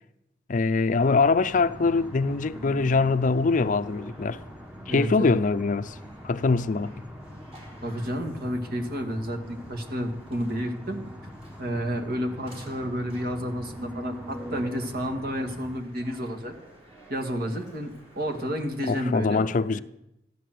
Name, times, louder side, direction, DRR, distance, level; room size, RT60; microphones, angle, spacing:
voice 1, 0.5-4.4 4.9-6.0 6.2-6.9 18.9-19.8, left 4 dB, 45° left, 0.5 m, -23 dB
sound 1, 0.9-15.8, equal, 5° right, 1.0 m, -42 dB
sound 2, 1.6-18.8, right 1 dB, 35° right, 4.2 m, -53 dB
voice 2, 4.9-5.4 7.8-11.0 11.6-16.5 17.1-19.8, equal, 60° right, 2.1 m, -31 dB
14.0 x 11.5 x 7.7 m
head